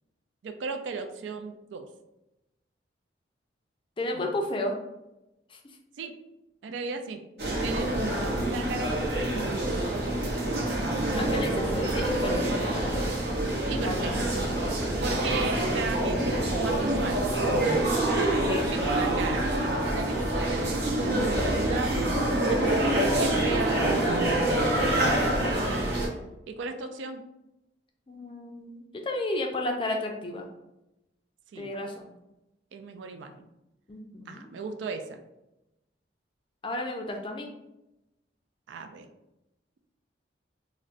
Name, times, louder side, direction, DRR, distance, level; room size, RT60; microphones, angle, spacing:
voice 1, 0.4-1.9 4.1-4.3 6.0-6.1 6.6-7.2 7.6-10.4 13.7-14.1 15.0-17.9 18.7-23.9 25.7-25.8 26.5-27.2 31.5-31.7 32.7-33.5 34.3-35.2 38.7-39.1, right 4 dB, 80° right, 6 dB, 0.3 m, -36 dB
voice 2, 4.0-4.8 5.5-5.6 11.2-13.1 13.8-14.2 18.4-18.8 24.6-25.0 25.2-25.8 28.1-30.5 31.6-32.1 33.9-34.5 36.6-37.5, left 1 dB, 30° left, 2 dB, 0.4 m, -33 dB
sound 1, 7.4-26.1, right 1 dB, 60° right, 0.7 m, -26 dB
3.8 x 2.1 x 2.4 m, 0.93 s
head